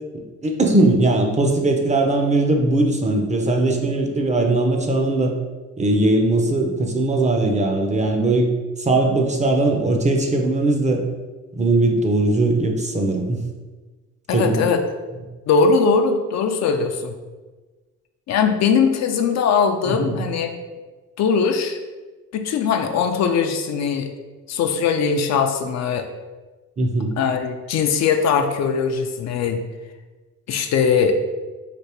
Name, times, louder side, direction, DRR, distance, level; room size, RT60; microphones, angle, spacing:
voice 1, 0.1-5.3 5.8-8.5 8.8-11.0 11.5-13.4 14.3-14.7 19.9-20.2 26.8-27.1, right 2 dB, 25° right, 3 dB, 0.5 m, -19 dB
voice 2, 14.3-14.8 15.5-17.1 18.3-20.5 21.2-21.8 22.3-24.1 24.5-26.1 27.2-29.6 30.5-31.2, left 5 dB, 60° left, 6 dB, 0.4 m, -20 dB
3.3 x 2.9 x 2.9 m, 1.3 s
cardioid pair, 90°, 30 cm